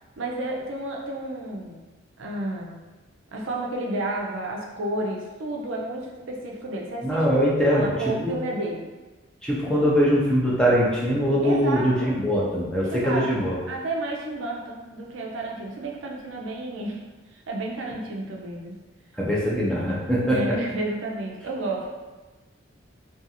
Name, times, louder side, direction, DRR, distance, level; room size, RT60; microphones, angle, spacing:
voice 1, 0.2-1.8 2.2-2.8 3.3-7.3 7.7-8.9 11.4-12.2 12.8-17.0 17.3-18.8 20.2-21.9, right 2 dB, 70° right, -1 dB, 0.4 m, -31 dB
voice 2, 7.0-7.9 8.2-8.4 9.4-13.5 19.2-20.4, equal, 5° left, -6 dB, 0.4 m, -22 dB
2.5 x 2.3 x 2.7 m, 1.2 s
head